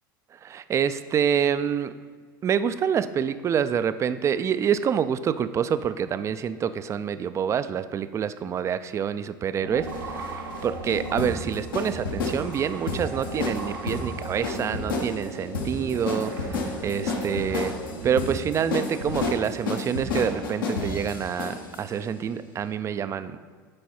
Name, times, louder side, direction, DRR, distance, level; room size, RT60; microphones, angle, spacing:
voice 1, 0.4-1.9 2.4-17.7 18.0-23.4, right 8 dB, 25° right, 13 dB, 0.4 m, -27 dB
sound 1, 9.6-19.1, right 2 dB, 80° right, 1.2 m, -37 dB
sound 2, 9.8-21.8, left 3 dB, 75° left, 1.1 m, -31 dB
9.7 x 4.6 x 4.3 m, 1.5 s
figure-of-eight pair, 80°, 12 cm